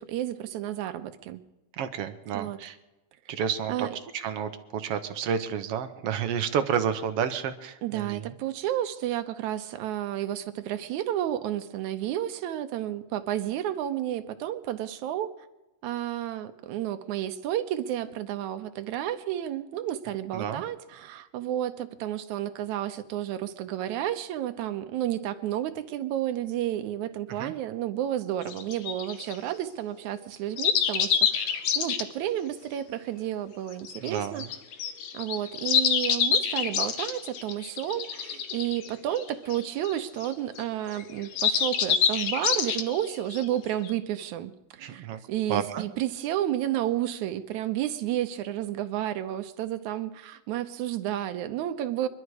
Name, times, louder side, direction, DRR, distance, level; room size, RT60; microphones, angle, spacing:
voice 1, 0.0-1.4 2.3-2.6 3.7-4.0 7.8-15.3 15.8-34.4 35.1-52.1, right 12 dB, 85° right, 9 dB, 2.3 m, -31 dB
voice 2, 1.7-2.8 3.3-3.9 4.1-8.3 20.3-20.6 27.3-27.5 34.0-34.5 44.8-45.2 45.5-45.8, right 8 dB, 65° right, 9 dB, 1.7 m, -30 dB
sound 1, 28.4-29.4 30.6-32.0 33.7-40.6 40.9-43.9, left 7 dB, 80° left, 2.5 m, -27 dB
22.5 x 12.0 x 4.8 m, 1.0 s
omnidirectional pair, 3.3 m